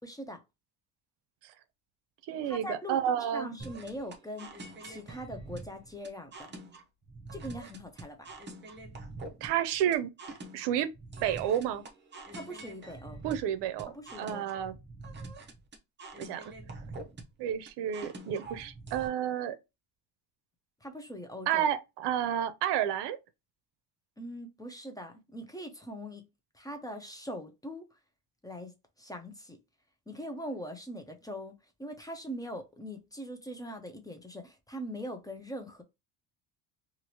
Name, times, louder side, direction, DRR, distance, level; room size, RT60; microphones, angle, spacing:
voice 1, 0.0-0.4 2.4-4.5 4.8-6.5 7.3-8.3 12.3-13.2 13.9-14.6 20.8-21.7 24.2-26.3 26.5-27.9 28.4-29.6 30.1-35.8, equal, 10° left, 0.5 m, -42 dB
voice 2, 2.3-3.6 9.4-10.1 10.5-10.9 11.2-11.8 13.2-14.8 16.2-16.4 17.4-19.6 21.5-23.2, right 10 dB, 75° right, 0.6 m, -30 dB
sound 1, 3.6-19.1, right 2 dB, 25° right, 0.8 m, -45 dB
3.0 x 2.5 x 2.8 m
cardioid pair, 120°, 40 cm